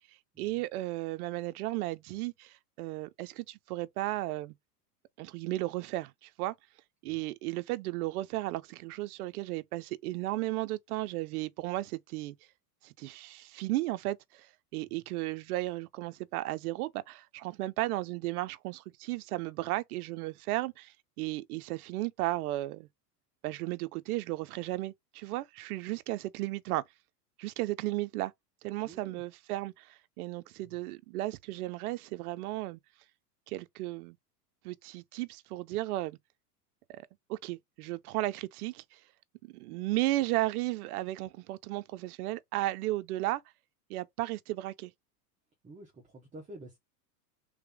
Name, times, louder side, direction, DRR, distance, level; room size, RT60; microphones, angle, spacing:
voice 1, 0.4-4.5 5.2-6.5 7.0-12.3 12.8-22.9 23.4-26.8 27.4-28.3 28.6-32.8 33.5-34.2 34.6-36.2 36.9-37.0 37.3-39.0 39.4-43.4 43.9-44.9, right 17 dB, 65° right, 0.6 m, -34 dB
voice 2, 28.8-29.2 30.6-30.8 45.6-46.8, right 1 dB, 15° right, 1.0 m, -50 dB
3.4 x 3.3 x 3.5 m
hypercardioid pair, 120°, 49 cm